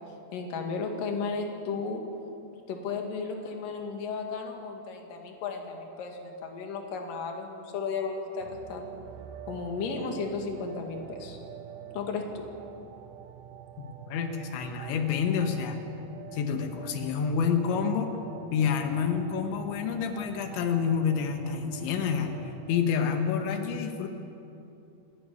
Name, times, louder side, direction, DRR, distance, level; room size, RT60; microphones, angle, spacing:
voice 1, 0.3-2.0 2.7-9.0 9.5-11.4 11.9-12.4, left 4 dB, 55° left, 2 dB, 3.6 m, -34 dB
sound 1, 8.4-22.8, right 10 dB, 80° right, 3.0 m, -46 dB
voice 2, 13.8-15.8 16.3-18.2 18.5-24.1, left 6 dB, 90° left, 5 dB, 3.7 m, -28 dB
28.0 x 13.0 x 9.7 m, 2.9 s
omnidirectional pair, 5.1 m